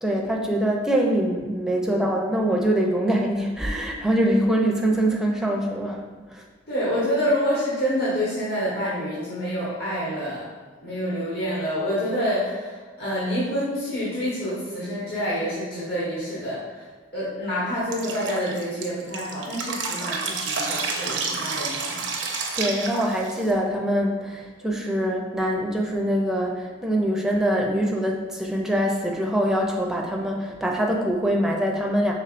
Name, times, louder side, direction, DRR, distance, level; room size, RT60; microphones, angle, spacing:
voice 1, 0.0-6.0 6.3-6.4 22.6-32.1, right 1 dB, 5° right, -1 dB, 0.5 m, -24 dB
voice 2, 6.7-10.5 10.8-16.8 17.1-22.0, equal, 55° left, -10 dB, 1.3 m, -27 dB
Drip, 17.9-23.5, right 4 dB, 75° right, 0.6 m, -29 dB
5.5 x 3.6 x 2.5 m, 1.4 s
head